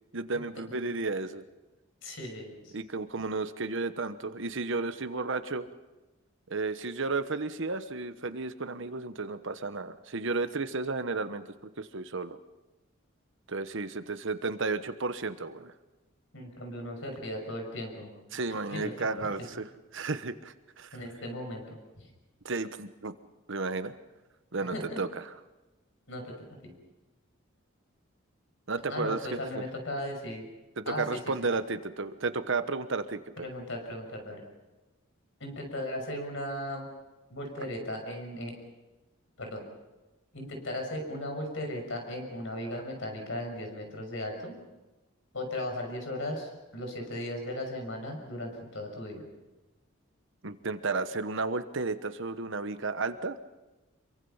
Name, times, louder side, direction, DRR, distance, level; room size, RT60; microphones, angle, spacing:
voice 1, 0.1-1.4 2.7-5.7 6.5-11.4 11.8-12.4 13.5-15.7 18.3-19.6 19.9-20.9 22.4-23.1 23.5-23.9 24.5-25.1 28.7-29.6 30.8-33.5 50.4-53.4, right 3 dB, 65° right, 11 dB, 1.2 m, -33 dB
voice 2, 2.0-2.8 16.3-18.1 18.5-18.9 19.2-19.3 20.9-22.1 24.6-25.0 26.1-26.7 28.9-30.5 30.8-31.2 31.5-31.6 33.4-34.4 35.4-36.9 37.3-38.5 39.4-39.6 40.3-44.5 45.3-49.2, left 1 dB, 65° left, 3 dB, 6.2 m, -37 dB
26.5 x 23.5 x 5.7 m, 1.1 s
head